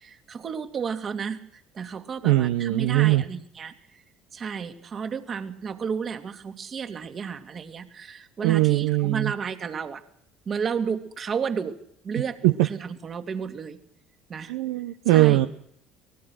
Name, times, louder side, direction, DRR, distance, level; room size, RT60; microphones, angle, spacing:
voice 1, 0.0-1.5 1.7-4.0 4.3-10.0 10.5-11.8 12.0-13.8 14.3-14.5 15.1-15.4, right 6 dB, 40° right, 8 dB, 2.4 m, -32 dB
voice 2, 2.2-3.2 8.4-9.3 12.4-12.5 14.5-15.5, right 17 dB, 70° right, 9 dB, 0.9 m, -20 dB
24.0 x 19.5 x 6.3 m, 0.68 s
hypercardioid pair, 60°, 0 cm